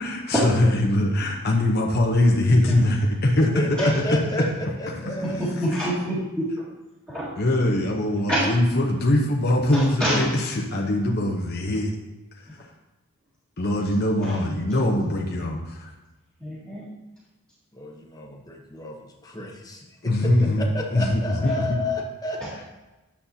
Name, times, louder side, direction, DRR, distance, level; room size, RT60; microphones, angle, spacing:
voice 1, 0.0-3.5 5.2-5.8 7.4-11.9 12.6-12.7 13.6-15.9 20.0-20.7 20.9-21.5, left 1 dB, 45° left, -1 dB, 0.8 m, -22 dB
voice 2, 2.5-2.8 3.8-3.9 5.4-6.7 7.1-7.3 8.3-8.5 9.7-10.3 14.2-14.4 16.4-16.8, equal, 15° right, -12 dB, 1.8 m, -26 dB
voice 3, 3.5-5.5 17.7-22.6, left 1 dB, 15° left, 0 dB, 0.9 m, -31 dB
10.5 x 7.3 x 2.8 m, 1.1 s
head